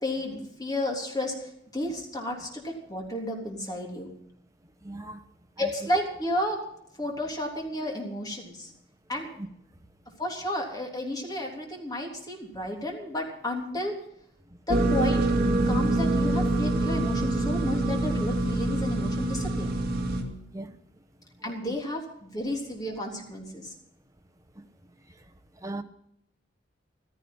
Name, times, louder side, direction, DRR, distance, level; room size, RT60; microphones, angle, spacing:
voice 1, 0.0-1.3 1.7-4.1 5.6-6.6 7.0-8.7 9.1-9.3 10.2-13.9 14.7-15.2 15.7-19.7 21.4-23.7, left 1 dB, 20° left, 3.4 m, -32 dB
voice 2, 4.8-5.2 5.6-5.9 9.4-9.5 15.8-15.9 20.5-20.7 21.4-21.8 24.6-24.7 25.6-25.8, right 2 dB, 20° right, 1.1 m, -39 dB
sound 1, 14.7-20.2, right 2 dB, 55° right, 2.3 m, -25 dB
15.0 x 13.5 x 5.6 m
head